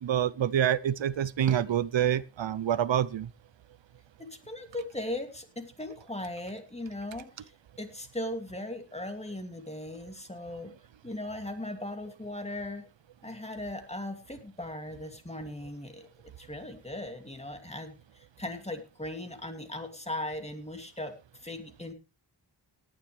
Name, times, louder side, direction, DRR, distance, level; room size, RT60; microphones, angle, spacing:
voice 1, 0.0-3.3, right 10 dB, 80° right, 0.7 m, -27 dB
voice 2, 4.2-7.5 7.8-10.7 11.0-12.8 13.2-16.1 16.4-21.2 21.4-21.9, left 1 dB, 15° left, 2.5 m, -38 dB
18.0 x 10.5 x 3.3 m
wide cardioid pair, 100°, 45 cm